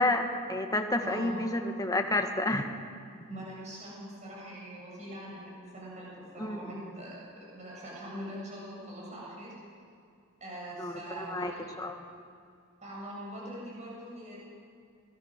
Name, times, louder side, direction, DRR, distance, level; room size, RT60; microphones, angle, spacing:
voice 1, 0.0-2.7 6.4-6.9 10.8-11.5 11.8-11.9, left 2 dB, 15° left, 4 dB, 1.5 m, -30 dB
voice 2, 1.0-1.5 3.3-6.1 6.3-9.5 10.4-11.8 12.8-14.4, right 1 dB, 35° right, -5 dB, 7.8 m, -42 dB
24.0 x 20.5 x 6.6 m, 2.3 s
head